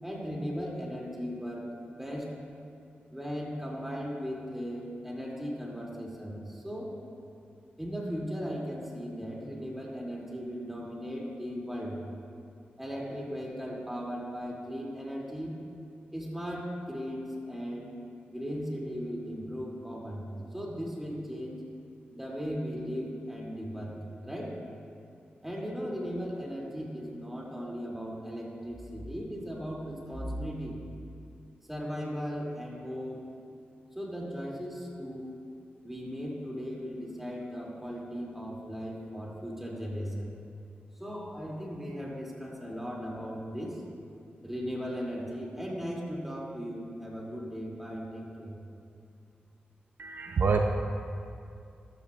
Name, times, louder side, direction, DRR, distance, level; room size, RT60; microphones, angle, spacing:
voice 1, 0.0-2.3 3.1-6.9 7.8-12.0 12.8-15.6 16.1-17.9 18.3-20.3 20.5-21.6 22.1-24.6 25.4-30.8 31.7-33.3 33.9-35.4 35.8-40.3 41.0-43.8 44.4-48.6, equal, 5° right, -3 dB, 2.8 m, -37 dB
voice 2, 50.0-50.6, right 5 dB, 65° right, 3 dB, 0.6 m, -26 dB
14.0 x 13.5 x 2.5 m, 2.5 s
cardioid pair, 75°, 4 cm